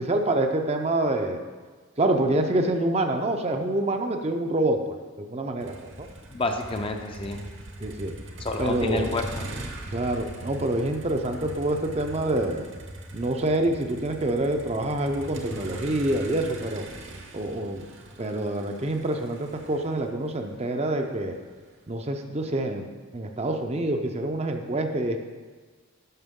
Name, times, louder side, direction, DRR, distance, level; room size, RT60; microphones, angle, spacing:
voice 1, 0.0-1.4 2.0-4.8 5.2-6.1 7.8-8.1 8.6-9.1 9.9-12.6 13.1-16.8 17.3-17.8 18.2-21.4 21.9-22.9 23.1-25.2, right 1 dB, 30° right, 4 dB, 0.5 m, -26 dB
Motor vehicle (road), 5.6-21.7, right 1 dB, 60° right, 1.0 m, -40 dB
voice 2, 6.3-7.4 8.4-9.6, left 2 dB, 25° left, 4 dB, 0.5 m, -29 dB
11.0 x 6.1 x 3.7 m, 1.4 s
head